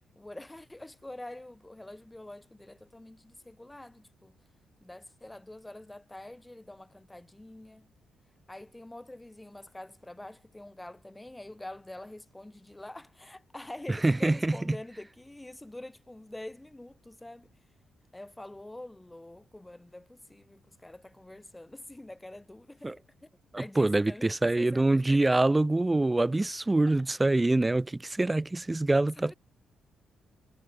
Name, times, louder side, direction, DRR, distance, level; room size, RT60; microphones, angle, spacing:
voice 1, 0.2-4.3 4.8-7.9 8.5-17.5 18.1-23.3 23.6-24.3 24.5-25.3 29.2-29.3, left 1 dB, 10° left, 5.2 m, -46 dB
voice 2, 13.9-14.8 22.8-23.0 23.5-29.3, right 2 dB, 15° right, 2.0 m, -25 dB
cardioid pair, 105°, 0 cm